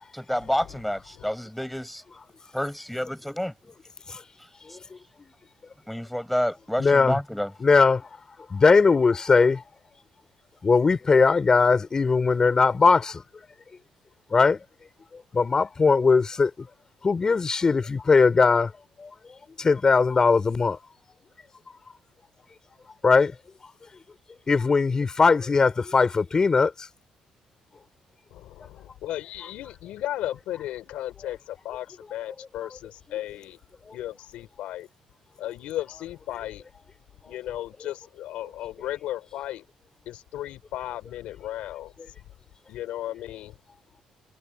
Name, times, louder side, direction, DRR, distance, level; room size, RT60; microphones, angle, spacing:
voice 1, 0.1-2.0 2.5-3.5 4.7-4.8 5.9-7.5, equal, 5° left, 6.6 m, -29 dB
voice 2, 6.8-7.2 7.6-8.1 8.5-9.6 10.6-13.2 14.3-14.6 15.3-16.5 17.0-18.7 19.0-19.1 19.6-20.8 23.0-23.3 24.5-26.9, left 4 dB, 35° left, 5.9 m, -20 dB
voice 3, 28.3-33.6 33.9-34.9 35.4-36.6 37.3-39.6 40.1-41.9 42.7-43.5, left 13 dB, 80° left, 4.8 m, -35 dB
cardioid pair, 80°, 2 cm